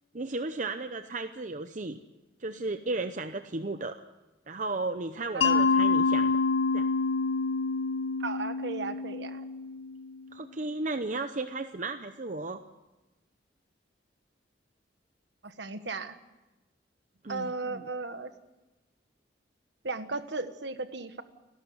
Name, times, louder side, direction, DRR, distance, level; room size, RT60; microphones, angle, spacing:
voice 1, 0.1-2.0 2.4-4.0 4.5-6.4 6.7-6.9 10.3-12.6 17.2-17.8, right 3 dB, 40° right, 8 dB, 0.8 m, -34 dB
Mallet percussion, 5.4-10.2, left 4 dB, 85° left, 1.4 m, -27 dB
voice 2, 8.2-9.5 15.4-16.2 17.3-18.3 19.8-21.2, right 3 dB, 65° right, 10 dB, 1.5 m, -35 dB
30.0 x 12.0 x 9.5 m, 1.1 s
head